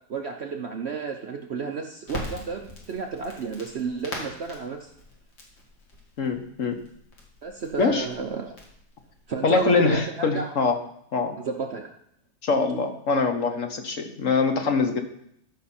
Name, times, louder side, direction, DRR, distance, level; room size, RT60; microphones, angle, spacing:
voice 1, 0.1-4.9 7.4-8.5 9.3-10.5 11.3-11.9, right 5 dB, 55° right, 3 dB, 0.8 m, -32 dB
Crackle, 2.1-10.0, left 1 dB, 80° left, 2.7 m, -42 dB
voice 2, 6.2-6.8 7.8-8.1 9.4-10.8 11.1-11.4 12.4-15.0, left 4 dB, 55° left, 6 dB, 1.2 m, -23 dB
14.0 x 6.0 x 4.3 m, 0.73 s
omnidirectional pair, 1.8 m